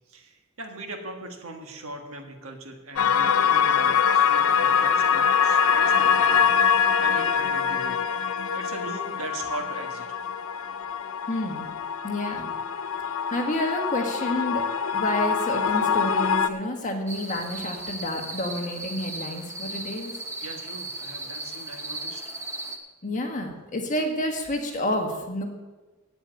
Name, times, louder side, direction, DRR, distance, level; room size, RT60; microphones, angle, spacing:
voice 1, 0.1-8.0 8.5-10.3 20.4-22.2, right 2 dB, 65° right, 3 dB, 1.6 m, -40 dB
sound 1, 3.0-16.5, left 7 dB, 65° left, 0.6 m, -24 dB
voice 2, 11.3-11.8 12.0-12.5 13.0-14.7 14.9-20.1 23.0-25.4, left 1 dB, 35° left, 3 dB, 1.6 m, -29 dB
sound 2, 17.1-22.8, right 2 dB, 15° right, 1.0 m, -36 dB
8.5 x 7.9 x 8.9 m, 1.2 s
head